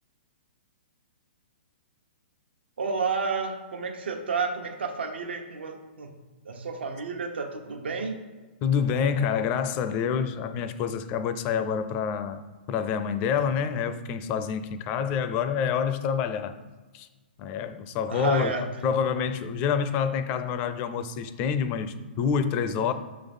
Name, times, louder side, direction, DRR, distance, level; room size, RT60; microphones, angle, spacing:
voice 1, 2.8-6.1 6.4-8.2 18.1-18.7, right 5 dB, 85° right, 4 dB, 1.1 m, -31 dB
voice 2, 8.6-12.4 12.7-16.5 16.9-17.1 17.4-18.5 18.8-22.9, left 7 dB, 25° left, 10 dB, 0.4 m, -27 dB
6.5 x 3.8 x 5.4 m, 1.3 s
hypercardioid pair, 165°, 6 cm